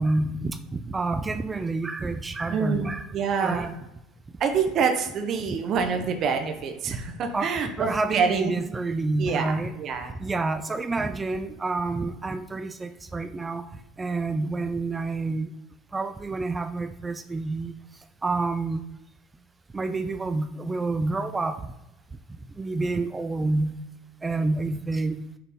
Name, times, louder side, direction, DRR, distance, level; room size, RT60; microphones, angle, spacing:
voice 1, 0.0-3.1 3.4-3.7 7.3-7.5 7.8-9.7 10.2-13.6 14.0-15.5 15.9-17.7 18.2-18.8 19.7-21.6 22.6-23.8 24.2-25.2, right 3 dB, 20° right, 9 dB, 0.4 m, -28 dB
voice 2, 2.5-3.7 4.4-8.6 9.2-10.2, right 6 dB, 50° right, 6 dB, 0.8 m, -26 dB
6.8 x 4.0 x 3.6 m, 0.90 s
supercardioid pair, 100°, 0 cm